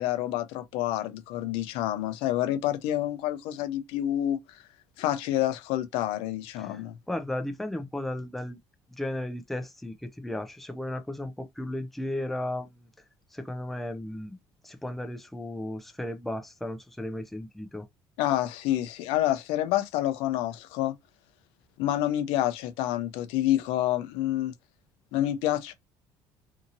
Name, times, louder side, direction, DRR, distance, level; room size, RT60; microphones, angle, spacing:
voice 1, 0.0-4.4 5.0-6.9 18.2-20.9 21.8-24.5 25.1-25.7, left 13 dB, 85° left, 0.5 m, -28 dB
voice 2, 6.6-8.6 8.9-12.9 13.3-14.4 14.6-17.9, left 1 dB, ahead, 0.4 m, -35 dB
2.7 x 2.7 x 2.6 m
cardioid pair, 135°, 9 cm